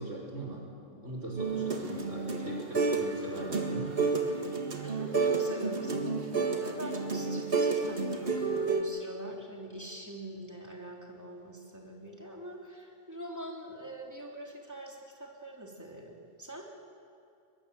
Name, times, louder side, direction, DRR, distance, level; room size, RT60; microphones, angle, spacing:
voice 1, 0.0-3.9, right 1 dB, 80° right, -3 dB, 5.3 m, -40 dB
sound 1, 1.4-3.1 3.4-8.8, right 4 dB, 50° right, 2.0 m, -30 dB
voice 2, 4.8-16.6, right 1 dB, 15° right, -1 dB, 3.4 m, -44 dB
22.0 x 22.0 x 7.8 m, 2.4 s
omnidirectional pair, 1.3 m